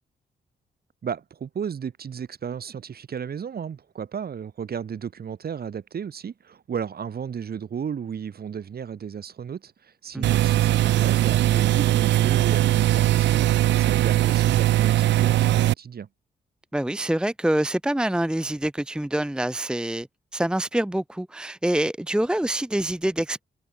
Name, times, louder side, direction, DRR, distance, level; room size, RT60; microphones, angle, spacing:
voice 1, 1.0-16.1, right 7 dB, 60° right, 6.4 m, -34 dB
sound 1, 10.2-15.7, right 14 dB, 80° right, 0.5 m, -20 dB
voice 2, 16.7-20.1 20.3-23.4, right 1 dB, 5° right, 0.9 m, -26 dB
cardioid pair, 90°, 18 cm